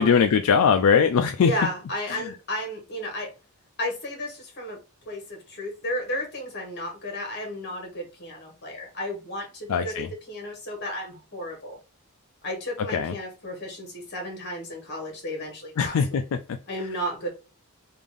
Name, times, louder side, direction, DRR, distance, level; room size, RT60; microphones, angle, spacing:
voice 1, 0.0-1.5 2.1-2.2 9.7-10.1 12.9-13.1 15.8-16.2, left 6 dB, 70° left, 7 dB, 0.4 m, -20 dB
voice 2, 1.4-3.3 3.8-4.8 5.0-11.8 12.4-16.2 16.7-17.3, left 1 dB, 50° left, 1 dB, 1.6 m, -33 dB
3.5 x 2.5 x 3.5 m, 0.33 s
head